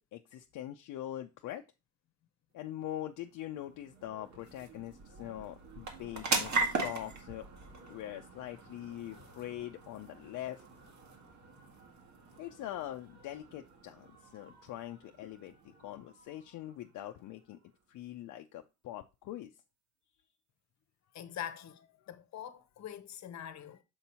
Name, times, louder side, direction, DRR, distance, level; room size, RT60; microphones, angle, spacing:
voice 1, 0.1-1.6 2.5-7.4 7.9-10.6 12.4-14.1 14.3-15.5 15.8-17.6 17.9-19.5, left 13 dB, 80° left, 0.5 m, -43 dB
sound 1, 2.9-17.7, right 3 dB, 65° right, 1.7 m, -41 dB
voice 2, 21.1-23.8, left 10 dB, 65° left, 0.9 m, -44 dB
7.0 x 2.9 x 5.5 m
cardioid pair, 90°, 30 cm